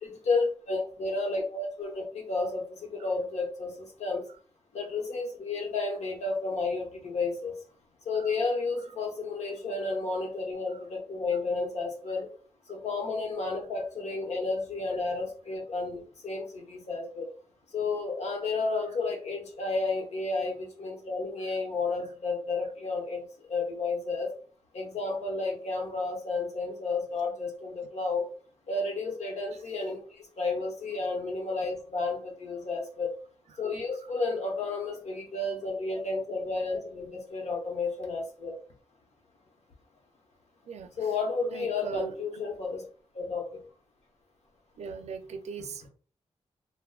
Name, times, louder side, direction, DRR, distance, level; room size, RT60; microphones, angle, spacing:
voice 1, 0.0-4.2 4.7-7.5 8.1-12.3 12.7-17.3 17.7-24.3 24.7-28.2 28.7-33.1 33.6-38.5 41.0-42.8 43.1-43.6, left 3 dB, 80° left, 1 dB, 0.9 m, -32 dB
voice 2, 40.7-41.1 41.5-42.4 44.8-45.9, right 5 dB, 80° right, 7 dB, 0.4 m, -41 dB
3.5 x 2.1 x 2.3 m, 0.41 s
wide cardioid pair, 130°, 11 cm